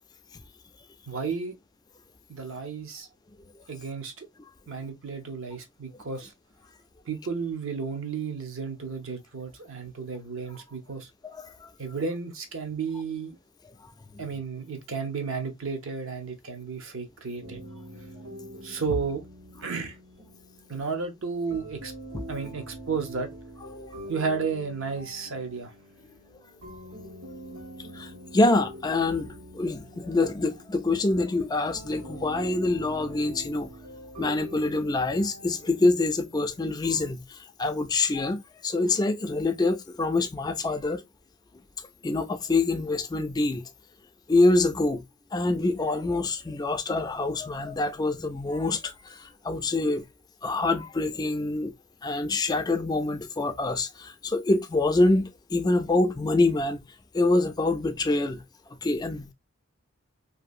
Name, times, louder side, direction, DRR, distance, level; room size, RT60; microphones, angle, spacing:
voice 1, 1.1-1.5 2.3-3.1 3.7-4.3 4.7-6.3 7.0-11.1 11.8-13.4 14.2-17.6 18.6-19.2 19.6-20.0 20.7-21.9 22.3-23.3 24.1-25.7, right 5 dB, 65° right, 0.7 m, -33 dB
voice 2, 11.2-11.7 13.8-13.9 18.9-19.0 22.1-22.2 23.7-23.9 27.9-33.7 34.2-41.0 42.0-43.7 44.3-45.0 45.3-50.1 50.4-51.7 52.0-56.9 57.1-58.4 58.7-59.3, left 2 dB, 20° left, 0.3 m, -26 dB
sound 1, 17.4-37.1, equal, 85° right, 1.5 m, -44 dB
2.7 x 2.6 x 2.4 m
head